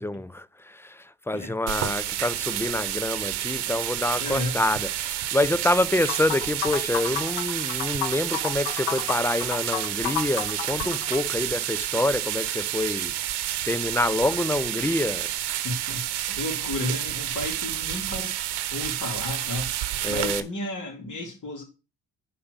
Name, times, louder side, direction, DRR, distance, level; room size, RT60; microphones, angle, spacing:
voice 1, 0.0-13.2 13.7-15.3 20.0-20.5, left 1 dB, 5° left, 0.3 m, -27 dB
sound 1, 1.7-20.4, right 13 dB, 75° right, 0.9 m, -30 dB
voice 2, 4.2-4.6 15.6-18.4 18.7-19.7 20.1-21.6, left 2 dB, 45° left, 3.6 m, -33 dB
sound 2, 6.1-11.2, left 12 dB, 70° left, 0.8 m, -32 dB
5.9 x 5.0 x 6.6 m
supercardioid pair, 65°, 41 cm